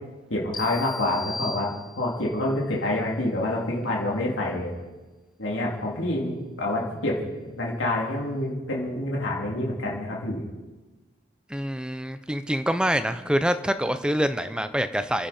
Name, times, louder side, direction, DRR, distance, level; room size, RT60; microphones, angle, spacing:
voice 1, 0.3-4.7 5.4-7.2 7.6-10.4, left 1 dB, 80° left, -3 dB, 3.0 m, -27 dB
sound 1, 0.5-2.3, left 3 dB, 25° left, 0.9 m, -37 dB
voice 2, 11.5-15.3, equal, 5° right, 10 dB, 0.6 m, -26 dB
29.5 x 10.5 x 4.4 m, 1.2 s
head